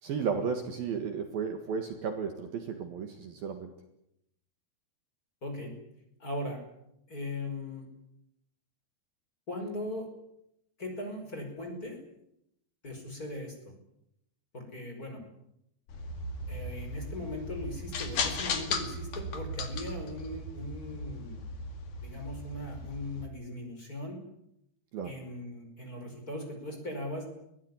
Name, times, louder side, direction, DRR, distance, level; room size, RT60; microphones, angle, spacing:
voice 1, 0.0-3.8 24.9-25.2, right 6 dB, 60° right, 6 dB, 3.1 m, -34 dB
voice 2, 5.4-5.8 6.2-6.6 7.1-7.9 9.5-10.1 10.8-12.0 12.8-13.7 14.5-15.2 16.5-21.4 22.0-24.2 25.0-27.3, left 1 dB, 20° left, 3 dB, 5.3 m, -39 dB
sound 1, 15.9-23.3, left 3 dB, 50° left, 3.2 m, -37 dB
23.0 x 17.5 x 9.8 m, 0.80 s
omnidirectional pair, 5.4 m